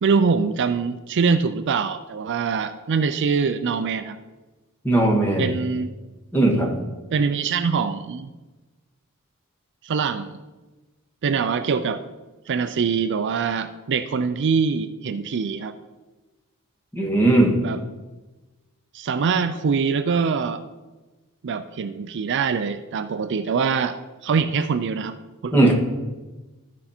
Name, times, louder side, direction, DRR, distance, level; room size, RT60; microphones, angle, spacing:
voice 1, 0.0-4.2 5.4-5.9 7.1-8.3 9.8-10.4 11.2-12.0 12.5-15.7 17.6-17.8 18.9-20.6 21.4-24.0 24.2-25.2 25.4-25.7, right 5 dB, 55° right, 10 dB, 0.4 m, -23 dB
voice 2, 4.8-5.5 6.3-6.7 16.9-17.6 25.5-25.7, right 2 dB, 10° left, -2 dB, 1.7 m, -18 dB
13.5 x 5.4 x 4.3 m, 1.2 s
head